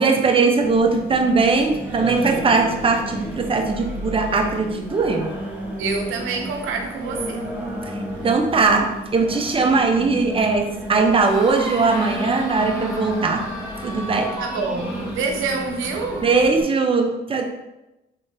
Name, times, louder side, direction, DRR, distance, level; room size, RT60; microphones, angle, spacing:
voice 1, 0.0-5.4 7.9-13.5 13.8-14.4 16.2-17.5, right 4 dB, 25° right, 0.6 m, -20 dB
Singing, 0.6-16.6, equal, 10° right, 1.0 m, -32 dB
voice 2, 5.8-7.5 14.3-16.3, right 4 dB, 85° right, 0.6 m, -27 dB
sound 1, 11.1-16.5, left 1 dB, 15° left, 0.8 m, -36 dB
3.6 x 3.5 x 2.7 m
cardioid pair, 90°, 20 cm